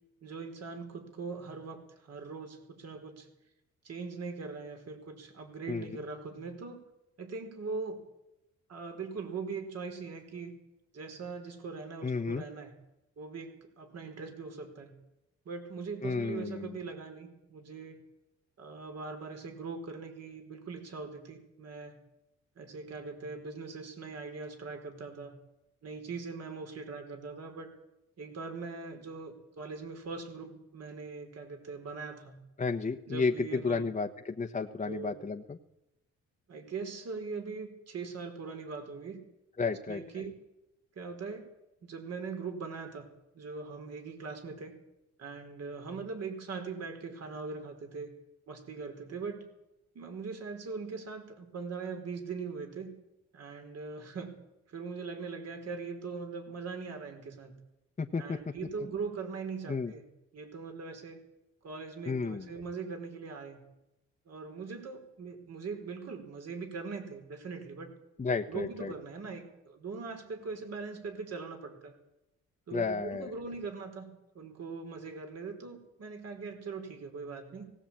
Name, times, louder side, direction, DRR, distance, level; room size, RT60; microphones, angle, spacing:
voice 1, 0.2-3.3 3.8-6.8 7.2-8.0 8.7-10.5 10.9-12.7 13.2-14.9 15.4-18.0 18.6-22.0 22.6-25.3 25.8-27.7 28.2-32.4 33.1-33.9 34.8-35.1 36.5-39.2 39.6-40.4 40.9-41.5 41.8-43.1 43.3-44.7 45.2-48.1 48.5-49.4 49.9-52.9 53.3-54.3 54.7-57.5 58.2-60.0 60.3-61.2 61.6-63.6 64.3-67.9 68.5-71.9 72.7-77.7, right 4 dB, 55° right, 5 dB, 4.7 m, -41 dB
voice 2, 12.0-12.4 16.0-16.8 32.6-35.6 39.6-40.0 58.0-58.4 59.7-59.9 62.1-62.5 68.2-68.9 72.7-73.3, left 4 dB, 25° left, 3 dB, 1.2 m, -32 dB
18.0 x 18.0 x 8.9 m, 0.91 s
cardioid pair, 90°, 30 cm